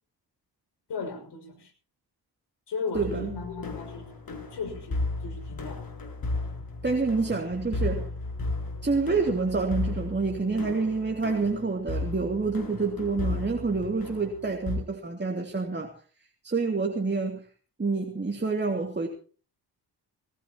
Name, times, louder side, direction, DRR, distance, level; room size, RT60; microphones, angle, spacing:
voice 1, 0.9-1.7 2.7-5.8, left 4 dB, 70° left, 3 dB, 6.1 m, -36 dB
sound 1, 2.9-14.8, left 2 dB, 55° left, 7.3 m, -34 dB
voice 2, 2.9-3.4 6.8-8.1 8.8-15.9 16.4-17.4 17.8-19.1, right 4 dB, 25° right, 3 dB, 2.7 m, -27 dB
20.0 x 18.5 x 3.0 m, 0.40 s
cardioid pair, 80°, 42 cm